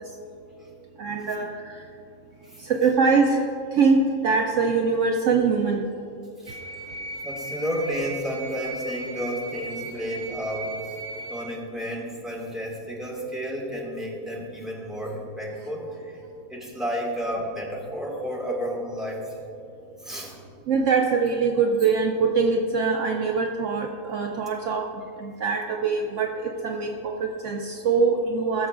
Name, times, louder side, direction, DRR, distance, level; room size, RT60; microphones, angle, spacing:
voice 1, 1.0-1.5 2.7-3.4 3.8-5.8 20.7-24.8 25.2-28.7, right 4 dB, 65° right, 2 dB, 0.9 m, -23 dB
sound 1, 6.5-11.5, right 3 dB, 30° right, 0.7 m, -36 dB
voice 2, 7.2-10.8 11.3-16.2 16.5-19.4 20.0-20.4 25.3-25.4, equal, ahead, -4 dB, 1.7 m, -32 dB
17.5 x 7.0 x 2.5 m, 2.7 s
omnidirectional pair, 1.5 m